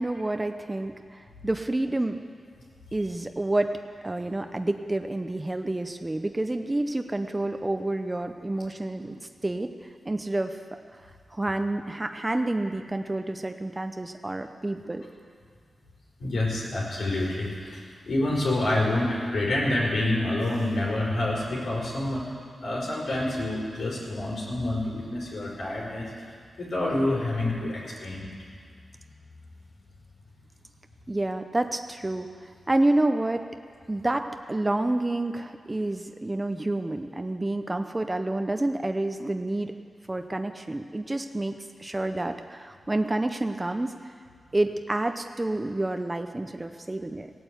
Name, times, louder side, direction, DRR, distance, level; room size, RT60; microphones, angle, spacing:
voice 1, 0.0-2.2 2.9-3.8 4.0-9.7 10.0-10.6 11.3-15.0 31.1-32.3 32.7-33.4 33.9-39.8 40.1-43.9 44.5-47.3, right 2 dB, 20° right, 7 dB, 0.7 m, -28 dB
voice 2, 16.2-22.2 22.6-26.1 26.6-28.3, left 1 dB, 80° left, -5 dB, 4.7 m, -27 dB
16.5 x 9.0 x 8.1 m, 2.1 s
cardioid pair, 80°, 0 cm